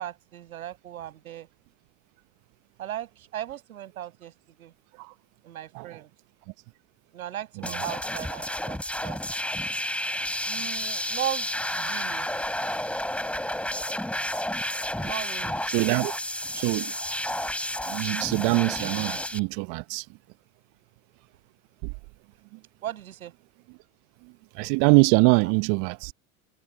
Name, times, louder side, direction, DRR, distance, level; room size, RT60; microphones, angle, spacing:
voice 1, 0.0-1.5 2.8-4.3 4.6-4.7 5.4-6.1 7.1-9.2 10.5-12.3 14.9-15.6 22.8-23.3, right 12 dB, 75° right, 6.8 m, -37 dB
sound 1, 7.6-19.4, left 1 dB, 5° left, 4.7 m, -31 dB
voice 2, 11.8-12.2 12.5-12.6 14.2-14.3 15.7-16.1 16.5-16.9 17.8-20.1 21.8-21.9 24.5-26.1, right 32 dB, 45° right, 0.9 m, -24 dB
figure-of-eight pair, 85°, 43 cm